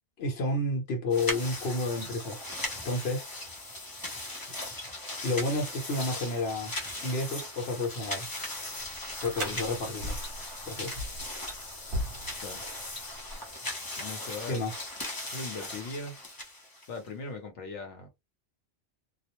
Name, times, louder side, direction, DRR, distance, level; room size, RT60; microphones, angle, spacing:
voice 1, 0.2-2.4 2.8-3.3 5.2-6.7 7.0-8.3 9.2-10.2 10.6-11.0 14.5-14.8, left 2 dB, 65° left, 1.1 m, -30 dB
sound 1, 1.1-17.1, left 1 dB, 25° left, 0.6 m, -38 dB
sound 2, 8.2-13.5, equal, 55° right, 0.8 m, -40 dB
voice 2, 14.0-14.6 15.2-16.2 16.9-18.1, left 3 dB, 85° left, 1.0 m, -39 dB
2.4 x 2.0 x 2.9 m
omnidirectional pair, 1.2 m